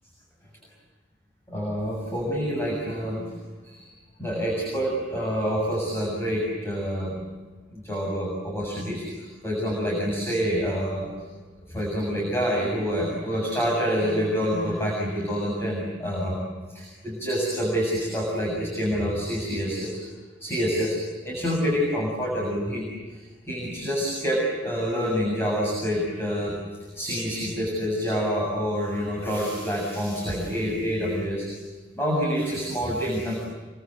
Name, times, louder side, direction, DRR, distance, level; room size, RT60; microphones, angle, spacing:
voice 1, 1.5-3.3 3.6-3.9 4.2-7.2 7.7-11.3 11.7-16.4 16.7-20.0 20.4-21.0 21.2-26.5 26.9-31.6 32.0-33.4, equal, 15° left, -3 dB, 7.5 m, -27 dB
29.5 x 25.5 x 7.9 m, 1.4 s
head